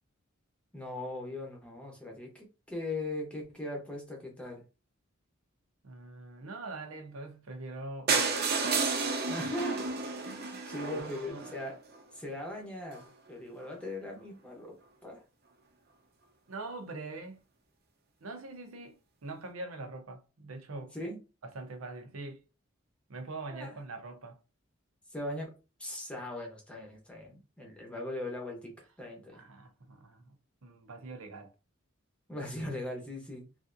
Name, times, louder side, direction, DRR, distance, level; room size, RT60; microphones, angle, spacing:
voice 1, 0.7-4.6 9.3-9.9 10.2-11.8 12.1-14.8 15.0-15.2 20.9-21.2 23.5-23.7 25.1-25.5 25.8-29.4 32.3-33.4, left 1 dB, 5° left, 0.8 m, -39 dB
voice 2, 5.8-8.5 11.0-11.5 16.5-17.4 18.2-21.0 21.5-22.4 23.1-24.4 29.3-30.3 30.6-31.5, right 2 dB, 85° right, 0.6 m, -43 dB
sound 1, 8.1-12.0 12.6-12.7 12.9-13.1 13.3-13.4 13.6-13.7, right 4 dB, 50° right, 0.7 m, -31 dB
3.3 x 2.6 x 2.5 m
head